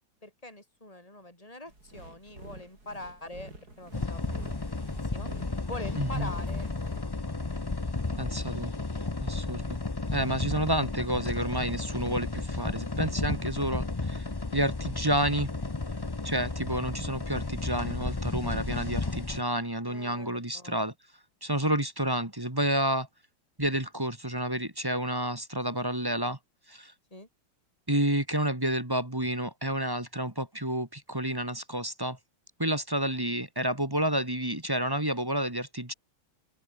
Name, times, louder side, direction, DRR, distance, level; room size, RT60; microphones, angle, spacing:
voice 1, 0.2-4.8 5.1-5.3 5.7-7.3 19.8-20.8 27.1-27.3, left 2 dB, 15° left, 7.8 m, -44 dB
sound 1, 1.7-7.0, right 2 dB, 45° right, 7.1 m, -48 dB
sound 2, 3.9-19.4, left 3 dB, 35° left, 0.4 m, -33 dB
voice 2, 6.0-6.3 8.2-8.7 9.2-9.8 10.1-15.5 16.2-20.9 21.4-23.1 23.6-26.4 26.7-26.9 27.9-32.2 32.6-35.9, right 1 dB, 10° right, 2.2 m, -30 dB
open air
omnidirectional pair, 2.3 m